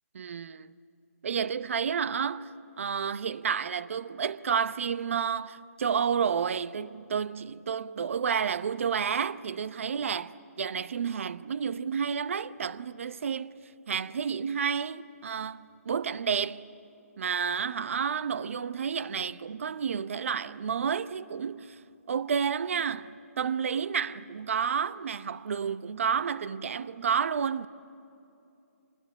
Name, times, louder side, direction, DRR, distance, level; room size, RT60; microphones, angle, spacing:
voice 1, 0.1-0.7 1.2-2.5 2.8-10.3 10.6-13.5 13.9-16.7 17.2-21.8 22.1-27.7, right 7 dB, 60° right, 0.8 m, -30 dB
25.0 x 20.0 x 9.8 m
hypercardioid pair, 155°, 8 cm